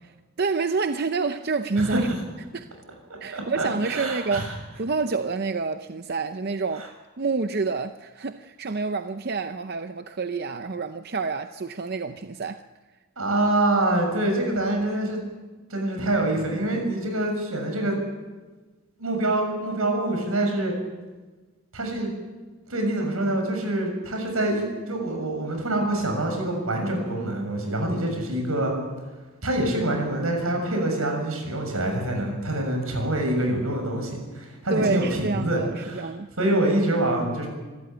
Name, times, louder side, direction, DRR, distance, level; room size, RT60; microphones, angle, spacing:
voice 1, 0.4-2.1 2.5-2.7 3.2-6.9 7.2-12.6 34.7-36.3, right 4 dB, 50° right, 0.6 m, -28 dB
voice 2, 3.3-4.6 6.7-6.9 13.2-15.2 15.7-18.0 19.0-20.7 21.7-22.1 22.7-28.7 29.4-36.1 36.4-37.5, right 1 dB, 90° right, 6.8 m, -25 dB
25.0 x 13.5 x 9.2 m
head